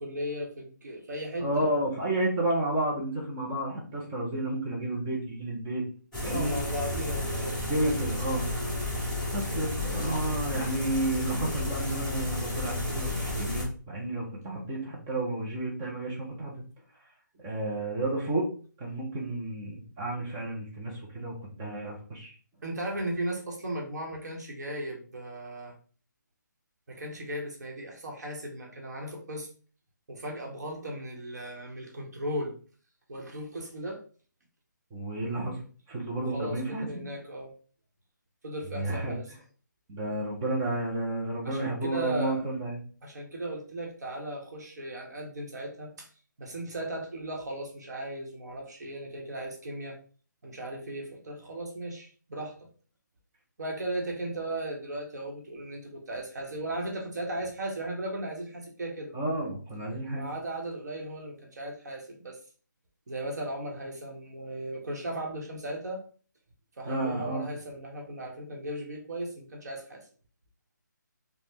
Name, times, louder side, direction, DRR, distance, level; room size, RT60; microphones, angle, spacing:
voice 1, 0.0-1.7 6.2-7.7 22.6-25.7 26.9-29.5 30.1-32.6 33.1-34.0 36.2-37.5 38.4-39.3 41.4-42.4 43.0-46.1 46.4-50.0 50.4-52.7 53.6-59.1 60.1-62.4 63.1-66.0 66.8-70.0, right 1 dB, 60° right, 1 dB, 0.9 m, -36 dB
voice 2, 1.4-5.8 6.2-6.5 7.6-8.5 9.3-16.6 17.4-18.5 18.8-22.3 34.9-35.6 35.9-37.0 38.7-39.1 39.9-42.8 59.1-60.3 66.8-67.5, right 1 dB, 10° right, -3 dB, 0.4 m, -31 dB
sound 1, 6.1-13.6, left 1 dB, 5° left, 0.8 m, -32 dB
3.4 x 2.0 x 2.8 m, 0.40 s
hypercardioid pair, 165°, 10 cm